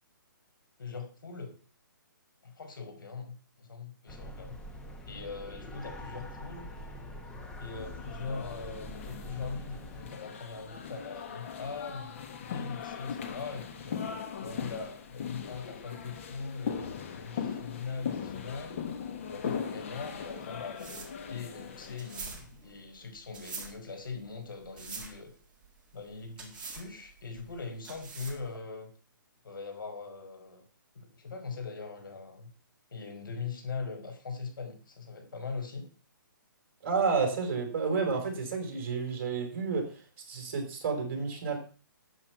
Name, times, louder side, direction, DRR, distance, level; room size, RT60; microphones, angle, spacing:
voice 1, 0.8-1.5 2.4-4.6 5.1-6.7 7.6-14.1 14.4-18.9 19.2-25.3 25.9-28.9 29.4-30.6 30.9-32.5 32.9-35.9, left 4 dB, 75° left, 5 dB, 5.2 m, -41 dB
sound 1, 4.1-10.1, equal, 5° left, 1.1 m, -44 dB
sound 2, 7.7-22.4, left 7 dB, 35° left, 1.6 m, -39 dB
sound 3, 20.2-28.6, right 4 dB, 10° right, 2.1 m, -45 dB
voice 2, 36.8-41.6, right 5 dB, 40° right, 4 dB, 4.6 m, -31 dB
12.5 x 8.2 x 6.0 m, 0.38 s
hypercardioid pair, 165°, 11 cm